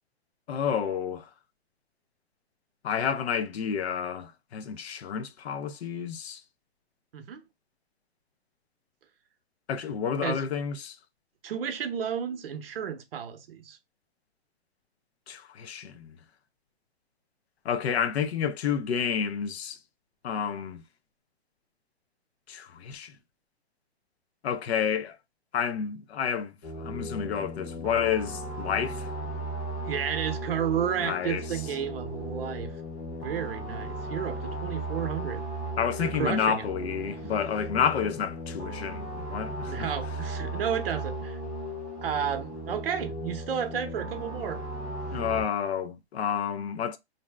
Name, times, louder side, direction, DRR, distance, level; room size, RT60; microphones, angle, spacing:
voice 1, 0.5-1.3 2.8-6.4 9.7-11.0 15.3-16.2 17.6-19.8 20.2-20.8 22.5-23.1 24.4-25.2 25.5-29.1 31.0-31.5 35.8-39.9 45.1-47.0, left 7 dB, 75° left, 0.6 m, -30 dB
voice 2, 7.1-7.4 10.2-10.4 11.4-13.8 29.9-32.7 33.1-35.5 36.0-36.7 39.6-41.4 42.0-44.6, right 8 dB, 60° right, 0.7 m, -32 dB
sound 1, 26.6-45.4, right 1 dB, 35° left, 0.9 m, -36 dB
2.7 x 2.1 x 3.2 m
hypercardioid pair, 175°, 33 cm